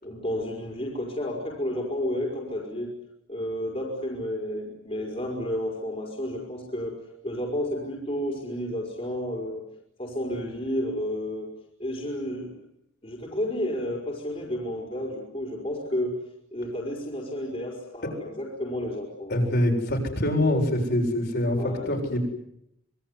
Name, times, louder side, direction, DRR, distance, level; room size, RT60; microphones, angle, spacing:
voice 1, 0.0-3.0 3.3-9.7 10.0-11.5 11.8-12.6 13.0-16.2 16.5-19.5 21.6-22.0, left 1 dB, 30° left, -1 dB, 5.2 m, -31 dB
voice 2, 19.3-21.6 21.9-22.3, left 1 dB, 55° left, 1 dB, 7.4 m, -24 dB
26.5 x 22.5 x 9.9 m, 0.80 s
head